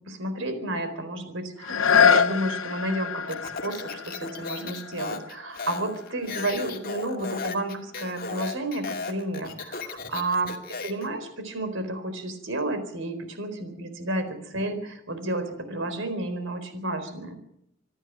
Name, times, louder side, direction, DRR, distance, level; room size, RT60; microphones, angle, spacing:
voice 1, 0.1-10.5 10.8-17.4, right 1 dB, 70° right, 9 dB, 4.3 m, -31 dB
sound 1, 1.6-7.2 7.8-7.9, left 7 dB, 85° left, 1.1 m, -26 dB
Speech, 3.3-11.1, left 4 dB, 50° left, 2.2 m, -36 dB
26.5 x 11.0 x 9.2 m, 0.76 s
head